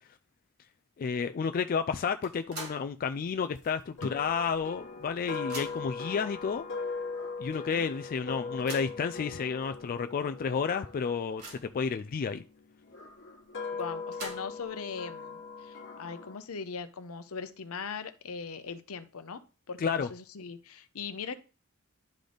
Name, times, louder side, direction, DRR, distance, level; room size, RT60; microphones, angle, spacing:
voice 1, 1.0-6.6 7.4-12.4 19.8-20.1, left 6 dB, 40° left, 0.3 m, -31 dB
sound 1, 2.2-3.0 3.4-3.5 4.5-4.6 4.9-6.0 6.8-6.9 7.3-7.4 8.3-9.0 9.7-9.8 10.2-10.3 10.8-11.8 13.8-14.7, right 3 dB, 50° right, 2.5 m, -45 dB
sound 2, 4.0-12.1 12.9-16.4, left 4 dB, 55° left, 1.3 m, -40 dB
voice 2, 13.7-19.4 19.7-19.8 20.1-21.4, left 5 dB, 75° left, 0.7 m, -40 dB
11.5 x 3.9 x 3.4 m
head